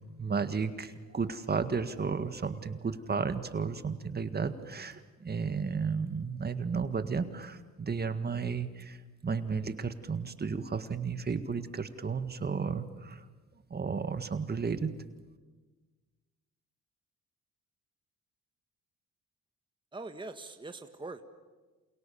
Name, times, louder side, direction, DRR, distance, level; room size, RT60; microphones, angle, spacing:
voice 1, 0.2-13.3 13.7-14.9, right 5 dB, 30° right, 9 dB, 1.8 m, -33 dB
voice 2, 19.9-21.2, right 3 dB, 15° right, 6 dB, 1.6 m, -42 dB
29.0 x 28.0 x 7.2 m, 1.3 s
cardioid pair, 90°, 30 cm